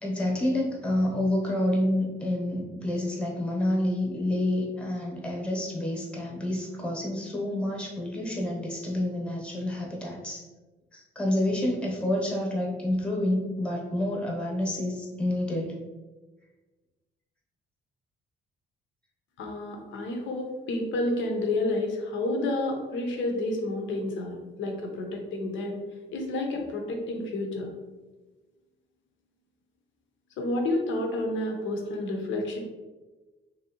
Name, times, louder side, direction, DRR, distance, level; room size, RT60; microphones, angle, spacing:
voice 1, 0.0-10.4 10.9-15.8, left 1 dB, 5° left, -1 dB, 0.9 m, -28 dB
voice 2, 19.4-25.8 26.1-27.7 30.4-32.6, left 2 dB, 75° left, 2 dB, 0.7 m, -30 dB
3.0 x 2.7 x 2.8 m, 1.2 s
cardioid pair, 90°, 20 cm